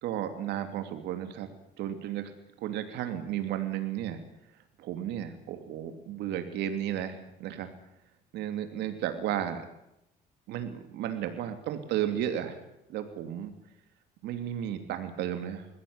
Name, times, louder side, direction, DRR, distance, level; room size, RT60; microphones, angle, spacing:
voice 1, 0.0-1.5 1.8-2.3 2.6-4.2 4.8-7.7 8.3-9.6 10.5-12.6 12.9-13.5 14.2-15.7, right 10 dB, 85° right, 8 dB, 2.9 m, -33 dB
21.5 x 16.0 x 9.7 m, 0.83 s
cardioid pair, 110°, 17 cm